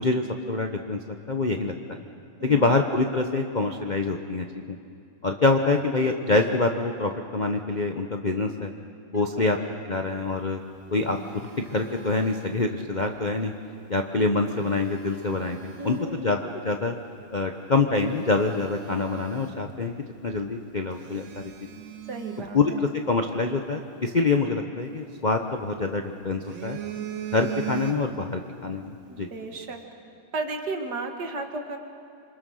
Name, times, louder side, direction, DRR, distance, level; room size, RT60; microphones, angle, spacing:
voice 1, 0.0-1.7 2.4-4.8 5.2-8.7 9.1-9.6 9.8-10.6 10.9-13.5 13.9-16.9 17.3-19.9 20.2-21.5 22.5-26.8 27.3-29.3, left 3 dB, 40° left, 4 dB, 0.6 m, -26 dB
voice 2, 2.4-2.8 9.1-9.5 15.8-16.4 22.1-22.9 29.1-29.8 30.3-31.8, right 3 dB, 50° right, 4 dB, 2.3 m, -34 dB
Telephone, 10.5-13.1 14.3-16.2 16.8-17.0 17.5-17.6 18.0-20.1 20.3-20.4 20.9-23.3 24.9-25.8 26.2-28.4 28.7-28.9, right 10 dB, 70° right, 2.0 m, -40 dB
27.5 x 25.0 x 6.4 m, 2.4 s
omnidirectional pair, 2.3 m